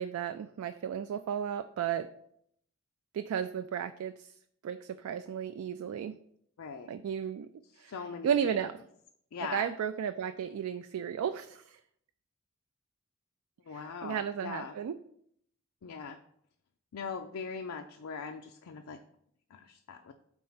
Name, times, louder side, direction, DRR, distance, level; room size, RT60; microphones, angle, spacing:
voice 1, 0.0-2.1 3.1-4.3 4.6-6.2 6.9-7.5 7.8-7.9 8.2-8.7 9.5-11.8 13.7-14.9, right 8 dB, 80° right, 10 dB, 0.3 m, -34 dB
voice 2, 6.6-6.9 7.6-8.6 9.3-9.7 13.7-14.8 15.8-16.2 16.9-19.0 19.5-20.1, left 5 dB, 85° left, 5 dB, 0.4 m, -41 dB
4.4 x 4.2 x 5.6 m, 0.70 s
head